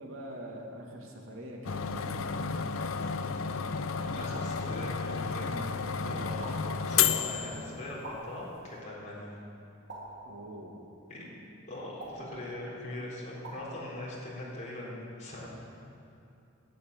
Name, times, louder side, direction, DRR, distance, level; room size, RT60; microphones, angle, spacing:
voice 1, 0.0-2.2 10.2-10.8, right 1 dB, 85° right, 0 dB, 2.1 m, -44 dB
sound 1, 1.6-8.2, left 6 dB, 85° left, 0.6 m, -32 dB
voice 2, 4.0-5.6 6.0-9.4 11.1-11.2 11.7-15.5, left 1 dB, 35° left, -5 dB, 3.8 m, -41 dB
sound 2, 4.3-4.7 6.4-6.8 8.0-8.4 9.9-10.3 12.0-12.4 13.4-13.7, right 2 dB, 60° right, 3.5 m, -44 dB
11.0 x 9.1 x 8.9 m, 2.7 s
head